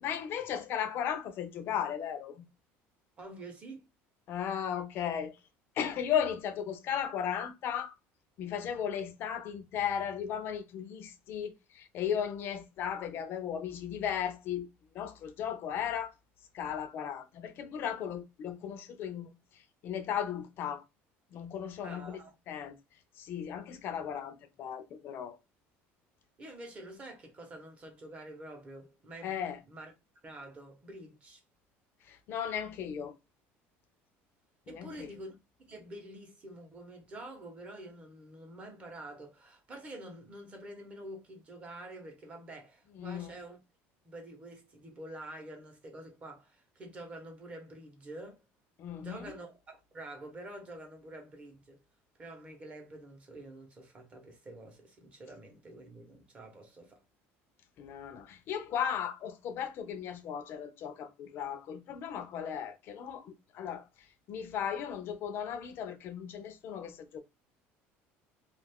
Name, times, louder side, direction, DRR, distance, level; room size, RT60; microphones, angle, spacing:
voice 1, 0.0-2.4 4.3-5.3 5.8-7.9 8.4-14.7 14.9-16.1 16.5-19.3 19.8-20.8 21.3-22.2 22.5-22.8 23.2-25.4 29.2-29.6 32.1-33.1 34.7-35.1 43.0-43.3 48.8-49.3 57.8-63.8 64.3-67.2, left 8 dB, 45° left, 0.5 m, -36 dB
voice 2, 3.2-3.9 21.8-22.3 26.4-29.4 29.7-29.9 30.2-31.4 34.7-35.4 35.7-43.6 44.0-48.4 49.0-51.8 52.2-57.0, right 1 dB, 25° right, 0.8 m, -47 dB
2.4 x 2.4 x 3.4 m
cardioid pair, 160°, 5 cm